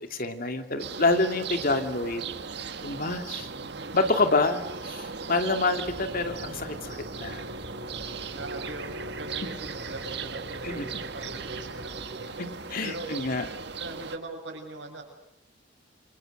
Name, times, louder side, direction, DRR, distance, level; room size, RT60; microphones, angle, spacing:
voice 1, 0.1-2.3 2.8-3.5 3.9-5.0 5.3-7.4 10.6-10.9 12.4-13.5, left 3 dB, 50° left, 6 dB, 2.5 m, -27 dB
sound 1, 0.8-14.2, right 4 dB, 65° right, 1.7 m, -38 dB
voice 2, 3.4-4.0 8.2-12.4 12.8-13.1 13.7-15.0, right 2 dB, 85° right, 3 dB, 7.3 m, -41 dB
sound 2, 5.8-11.9, equal, 35° right, 5.4 m, -45 dB
28.0 x 27.0 x 6.6 m, 0.80 s
head